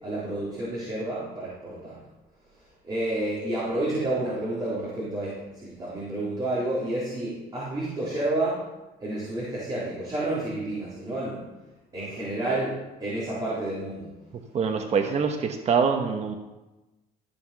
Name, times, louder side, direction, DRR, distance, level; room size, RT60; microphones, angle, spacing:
voice 1, 0.0-2.0 2.8-8.6 9.0-11.4 11.9-14.1, right 1 dB, 25° right, -8 dB, 3.9 m, -30 dB
voice 2, 14.5-16.3, right 6 dB, 40° right, 4 dB, 1.0 m, -24 dB
14.0 x 5.8 x 5.8 m, 1.1 s
cardioid pair, 110°, 17 cm